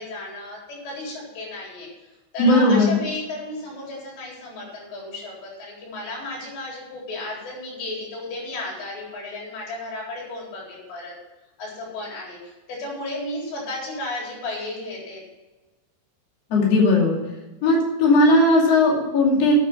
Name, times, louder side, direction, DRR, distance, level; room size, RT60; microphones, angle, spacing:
voice 1, 0.0-1.9 2.3-11.1 11.6-15.2, left 2 dB, 75° left, -4 dB, 6.2 m, -34 dB
voice 2, 2.4-2.9 16.5-17.2 17.6-19.5, left 2 dB, 40° left, -3 dB, 3.1 m, -17 dB
9.4 x 9.3 x 6.2 m, 1.1 s
omnidirectional pair, 5.1 m